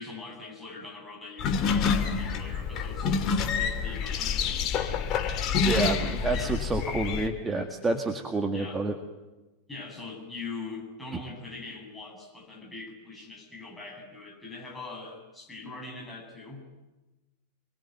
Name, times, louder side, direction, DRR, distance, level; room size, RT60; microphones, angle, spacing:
voice 1, 0.0-5.0 6.1-6.7 7.5-7.7 8.5-8.8 9.7-16.6, left 3 dB, 10° left, 0 dB, 7.9 m, -42 dB
sound 1, 1.4-7.3, left 6 dB, 35° left, 2.5 m, -27 dB
voice 2, 5.6-8.9, right 2 dB, 15° right, 5 dB, 2.0 m, -29 dB
27.0 x 21.5 x 9.4 m, 1.1 s
figure-of-eight pair, 90°, 0 cm